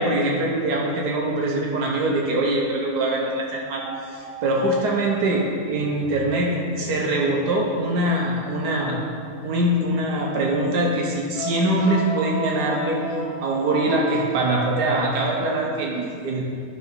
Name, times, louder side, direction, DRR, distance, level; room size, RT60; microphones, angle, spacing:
voice 1, 0.0-3.8 4.1-5.4 5.7-9.0 9.4-13.0 13.4-16.4, right 1 dB, 90° right, -1 dB, 1.5 m, -23 dB
sound 1, 3.7-5.7 8.6-8.7 10.2-10.3 10.7-10.8 11.3-14.5, right 1 dB, 15° left, 2.1 m, -34 dB
10.0 x 4.0 x 5.3 m, 2.4 s
omnidirectional pair, 1.7 m